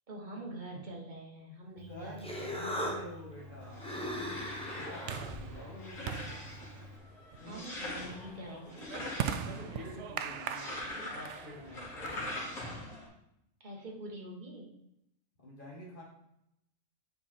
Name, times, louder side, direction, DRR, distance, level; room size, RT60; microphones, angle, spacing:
voice 1, 0.1-2.4 7.4-8.9 13.6-14.8, right 1 dB, 35° right, -2 dB, 1.6 m, -45 dB
Human voice, 1.8-7.0, equal, 5° left, 0.8 m, -40 dB
voice 2, 1.9-3.9 4.8-6.3 7.4-7.7 8.4-8.6 9.1-12.3 15.4-16.0, equal, 40° left, -4 dB, 2.0 m, -48 dB
sound 1, 2.4-12.8, right 8 dB, 70° right, 0.8 m, -42 dB
sound 2, 3.4-13.1, left 1 dB, 85° left, 2.5 m, -43 dB
8.1 x 5.1 x 4.3 m, 0.82 s
omnidirectional pair, 1.3 m